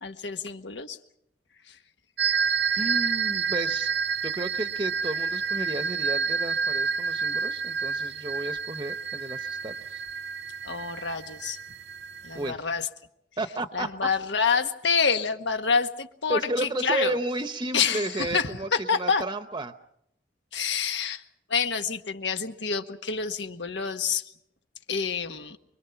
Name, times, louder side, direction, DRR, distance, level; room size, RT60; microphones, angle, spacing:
voice 1, 0.0-1.0 1.7-1.8 10.6-11.6 12.2-12.9 13.7-17.2 17.7-19.2 20.5-21.2 21.5-24.2 24.9-25.6, left 5 dB, 80° left, 7 dB, 1.5 m, -27 dB
sound 1, 2.2-12.5, right 5 dB, 70° right, 0.8 m, -29 dB
voice 2, 2.8-3.9 4.2-10.0 12.3-12.6 13.4-13.9 16.3-19.7, right 2 dB, 25° right, 9 dB, 0.8 m, -32 dB
25.0 x 23.5 x 5.8 m, 0.75 s
head